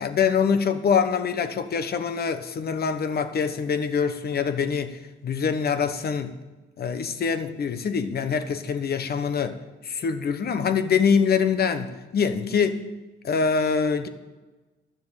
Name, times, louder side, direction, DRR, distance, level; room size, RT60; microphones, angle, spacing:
voice 1, 0.0-6.4 6.8-12.8 13.2-14.1, left 6 dB, 50° left, 10 dB, 1.2 m, -24 dB
13.0 x 6.9 x 9.1 m, 1.2 s
cardioid pair, 90°, 20 cm